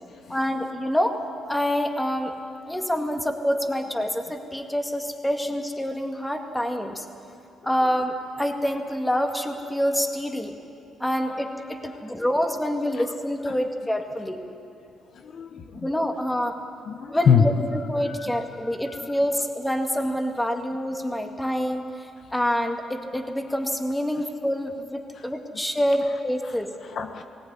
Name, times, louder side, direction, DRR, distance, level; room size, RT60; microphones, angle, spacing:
voice 1, 0.3-1.2 1.5-2.3 2.7-7.1 7.6-10.6 11.0-14.4 15.8-16.6 17.1-26.7, equal, 10° left, 4 dB, 2.0 m, -26 dB
voice 2, 15.1-15.9 16.9-17.7 18.0-18.3 18.9-19.1 26.4-26.6 26.9-27.2, left 6 dB, 60° left, 7 dB, 1.0 m, -24 dB
19.5 x 17.5 x 9.7 m, 2.6 s
cardioid pair, 90°, 0 cm